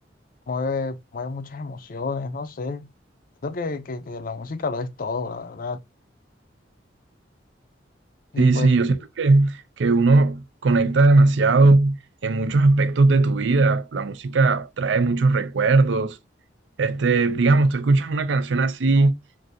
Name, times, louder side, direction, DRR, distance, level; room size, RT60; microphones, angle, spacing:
voice 1, 0.5-2.9 3.4-5.8 8.3-8.7, left 4 dB, 50° left, 0.5 m, -30 dB
voice 2, 8.4-16.2 16.8-19.2, right 3 dB, 75° right, 0.5 m, -19 dB
3.2 x 2.6 x 2.7 m
head